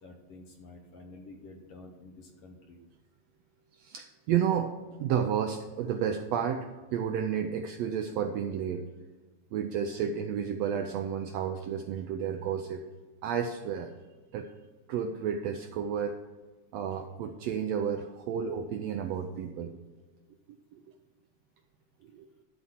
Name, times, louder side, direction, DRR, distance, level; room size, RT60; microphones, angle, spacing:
voice 1, 0.0-2.8, left 2 dB, 60° left, 2 dB, 1.8 m, -50 dB
voice 2, 3.8-4.7 5.0-8.8 9.5-12.8 13.2-13.9 14.3-14.5 14.9-16.2 16.7-19.7 20.7-20.8 22.1-22.3, right 8 dB, 85° right, 6 dB, 1.5 m, -31 dB
11.5 x 4.2 x 7.3 m, 1.2 s
omnidirectional pair, 3.5 m